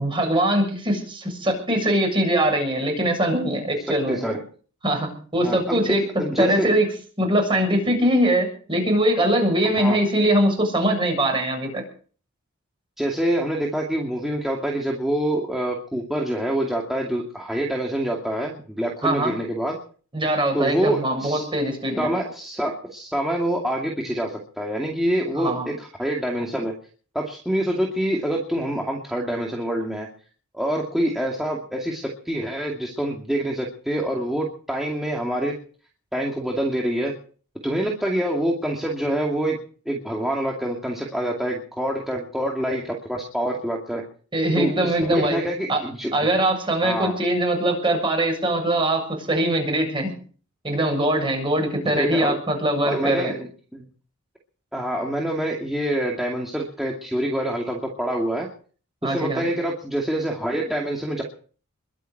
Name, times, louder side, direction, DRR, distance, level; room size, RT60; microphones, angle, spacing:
voice 1, 0.0-4.2 4.8-6.9 7.2-11.8 19.0-19.3 20.1-22.1 25.4-25.7 44.3-45.4 45.7-45.8 46.1-50.1 50.6-53.3 59.0-59.4, right 1 dB, 25° right, 3 dB, 7.4 m, -22 dB
voice 2, 4.1-4.4 5.4-6.7 9.8-10.0 13.0-19.8 20.5-21.4 22.0-26.7 27.1-30.1 30.5-35.5 36.1-37.1 37.6-39.6 39.9-44.0 44.6-46.3 46.8-47.1 51.8-52.4 52.8-53.9 54.7-58.5 59.0-61.2, right 1 dB, ahead, -1 dB, 2.4 m, -26 dB
22.5 x 7.7 x 7.9 m, 0.43 s
head